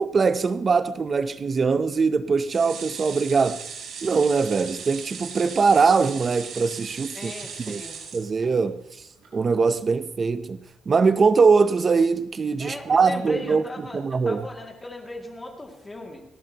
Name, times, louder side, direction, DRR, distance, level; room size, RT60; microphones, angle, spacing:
voice 1, 0.0-3.6 4.0-7.3 7.6-7.8 8.1-8.8 9.3-10.6 10.9-13.6 13.9-14.4, right 5 dB, 30° right, 0.7 m, -21 dB
sound 1, 2.5-8.8 9.2-9.3 9.6-9.7, right 6 dB, 80° right, 3.9 m, -38 dB
voice 2, 7.1-8.0 12.6-16.2, left 2 dB, 15° left, 2.3 m, -38 dB
29.0 x 12.0 x 2.9 m
cardioid pair, 165°, 0 cm